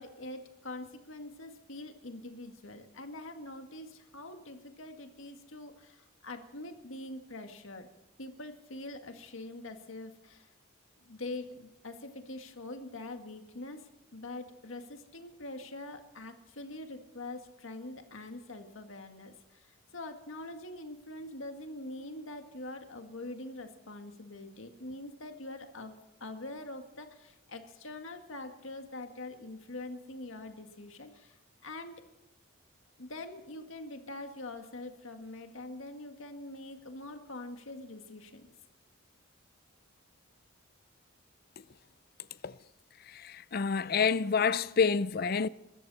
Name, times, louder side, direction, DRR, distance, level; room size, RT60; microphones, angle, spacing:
voice 1, 0.0-7.9 8.2-10.5 11.0-32.0 33.0-38.5, left 2 dB, 75° left, 1.9 m, -44 dB
voice 2, 43.1-45.5, left 5 dB, 45° left, 0.5 m, -28 dB
24.0 x 13.5 x 4.2 m
head